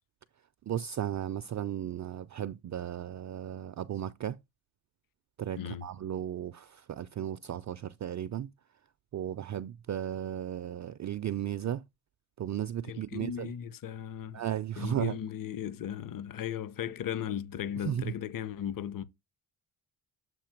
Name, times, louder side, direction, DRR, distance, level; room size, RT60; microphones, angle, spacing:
voice 1, 0.7-4.4 5.4-8.5 9.1-11.8 12.4-13.5 14.3-15.1 17.8-18.1, right 10 dB, 35° right, 0.5 m, -35 dB
voice 2, 12.9-14.4 14.8-19.0, left 9 dB, 45° left, 0.8 m, -36 dB
7.7 x 2.8 x 5.8 m
cardioid pair, 75°, 49 cm